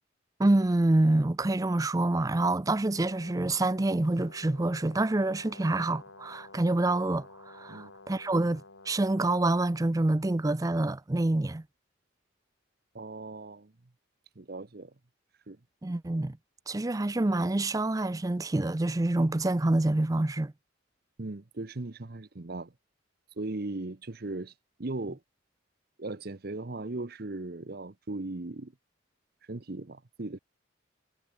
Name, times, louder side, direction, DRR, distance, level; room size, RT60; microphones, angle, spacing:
voice 1, 0.4-7.3 7.5-11.6 15.8-16.4 16.7-20.5, right 2 dB, 15° right, 0.4 m, -27 dB
Brass instrument, 2.9-9.9, left 2 dB, 70° left, 3.2 m, -52 dB
voice 2, 12.9-13.7 14.4-14.9 15.5-15.6 21.2-22.7 23.4-24.5 24.8-25.2 26.0-28.7 29.5-30.4, right 2 dB, 50° right, 0.9 m, -38 dB
head